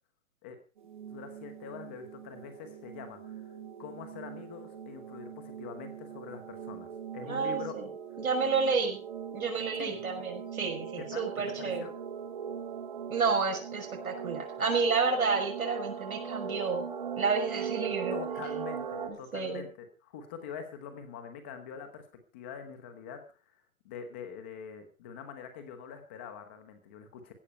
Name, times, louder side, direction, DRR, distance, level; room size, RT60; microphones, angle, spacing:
sound 1, 0.8-19.1, right 7 dB, 35° right, 2.2 m, -40 dB
voice 1, 1.1-3.5 3.8-7.7 9.8-10.0 11.0-11.9 18.1-22.1 22.3-23.2 23.8-27.3, left 7 dB, 10° left, 7 dB, 1.0 m, -44 dB
voice 2, 7.2-7.9 8.2-9.0 9.3-11.8 13.1-16.9 17.2-18.2 19.1-19.6, right 5 dB, 85° right, 3 dB, 6.1 m, -30 dB
16.0 x 13.5 x 4.4 m, 0.33 s
hypercardioid pair, 180°, 41 cm